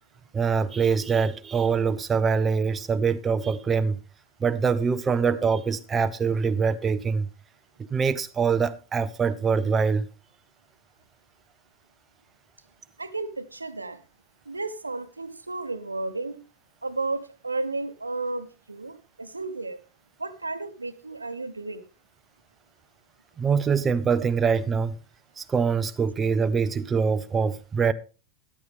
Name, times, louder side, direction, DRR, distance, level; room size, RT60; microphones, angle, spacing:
voice 1, 0.3-4.0 4.4-7.3 7.9-10.1 23.4-25.0 25.4-27.9, right 5 dB, 20° right, 0.5 m, -24 dB
voice 2, 13.0-14.0 14.5-16.4 16.8-19.8 20.2-21.8, right 3 dB, 80° right, 0.9 m, -33 dB
14.0 x 9.6 x 3.5 m
figure-of-eight pair, 90°, 0 cm